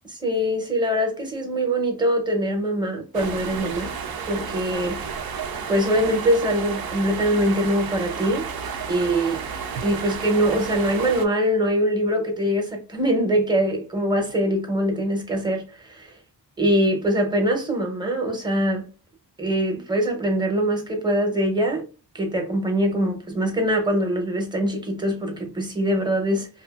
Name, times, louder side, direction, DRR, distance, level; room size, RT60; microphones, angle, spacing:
voice 1, 0.2-3.9 4.2-4.9 5.7-8.5 8.9-9.4 9.8-16.1 16.6-18.9 19.4-21.8 22.1-26.5, equal, 10° right, 0.8 m, -23 dB
sound 1, 3.1-11.3, right 6 dB, 65° right, 0.5 m, -32 dB
2.7 x 2.4 x 2.4 m
wide cardioid pair, 125°, 38 cm